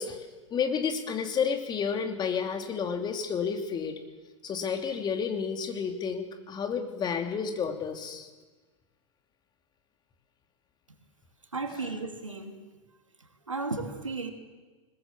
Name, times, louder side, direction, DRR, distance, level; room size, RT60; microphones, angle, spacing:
voice 1, 0.0-3.9 4.4-8.3 11.8-11.9, left 6 dB, 25° left, 5 dB, 3.0 m, -31 dB
voice 2, 11.5-12.6 13.5-14.3, right 3 dB, 85° right, 5 dB, 2.6 m, -34 dB
21.0 x 21.0 x 7.5 m, 1.3 s
figure-of-eight pair, 90°, 16 cm